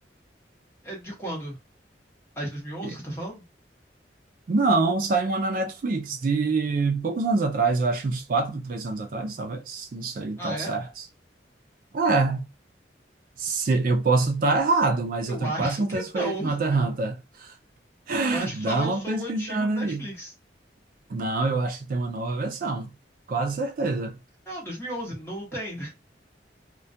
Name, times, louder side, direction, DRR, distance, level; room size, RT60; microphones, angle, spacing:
voice 1, 0.8-1.6 2.4-3.4 10.4-10.8 15.3-16.8 18.3-20.3 24.5-25.9, right 1 dB, 15° left, 0.9 m, -34 dB
voice 2, 4.5-11.0 11.9-12.5 13.4-17.5 18.1-20.1 21.1-22.9 23.3-24.2, right 3 dB, 50° right, 0.3 m, -25 dB
2.2 x 2.1 x 2.6 m
head